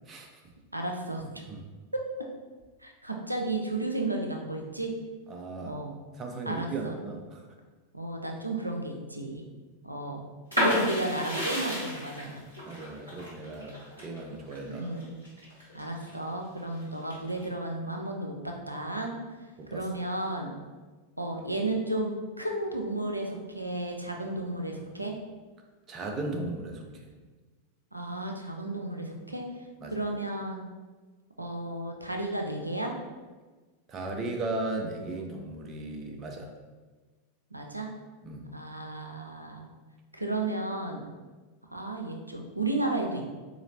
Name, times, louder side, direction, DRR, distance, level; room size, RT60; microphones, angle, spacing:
voice 1, 0.7-1.2 2.8-4.9 5.6-5.9 6.5-6.9 7.9-9.4 9.8-10.2 10.5-12.4 14.6-15.2 15.7-19.1 19.7-20.5 21.2-25.2 27.9-29.5 29.8-30.6 31.4-32.9 37.5-37.9 38.5-39.7 40.2-41.1 41.7-43.2, right 2 dB, 85° right, 2 dB, 0.5 m, -33 dB
voice 2, 5.3-5.8 6.2-7.5 12.6-13.7 14.0-14.9 19.6-19.9 25.9-27.1 29.8-29.9 33.9-36.5 38.2-38.5, right 2 dB, 25° right, 2 dB, 0.6 m, -36 dB
sound 1, 10.5-16.1 16.6-17.4, equal, 90° left, 1.4 m, -31 dB
4.1 x 2.9 x 2.7 m, 1.3 s
figure-of-eight pair, 90°, 0 cm